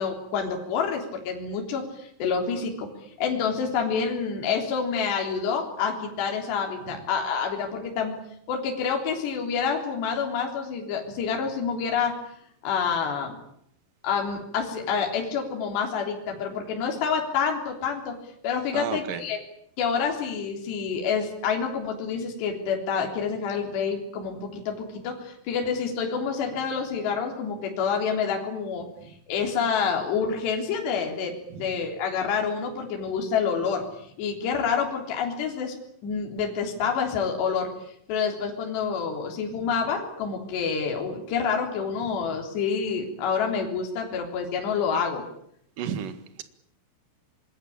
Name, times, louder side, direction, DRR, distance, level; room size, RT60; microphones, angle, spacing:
voice 1, 0.0-2.9 3.2-8.1 8.5-12.1 12.6-13.4 14.0-18.1 18.4-19.4 19.8-28.9 29.3-33.8 34.2-35.8 36.0-37.7 38.1-45.2, left 6 dB, 55° left, 5.5 m, -28 dB
voice 2, 18.7-19.2 29.0-29.1 31.5-31.7 39.5-39.7 45.8-46.4, right 9 dB, 55° right, 2.7 m, -34 dB
26.5 x 22.0 x 8.8 m
omnidirectional pair, 5.9 m